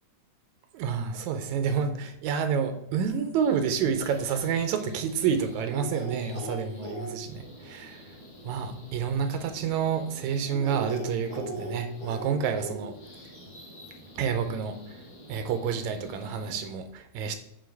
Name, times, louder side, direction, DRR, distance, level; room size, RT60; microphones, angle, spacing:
voice 1, 0.7-8.0 8.4-13.0 14.2-14.8 15.3-17.4, right 7 dB, 80° right, 8 dB, 2.0 m, -29 dB
sound 1, 3.4-16.7, right 1 dB, 35° left, 3.5 m, -42 dB
8.4 x 4.1 x 4.7 m, 0.84 s
omnidirectional pair, 3.5 m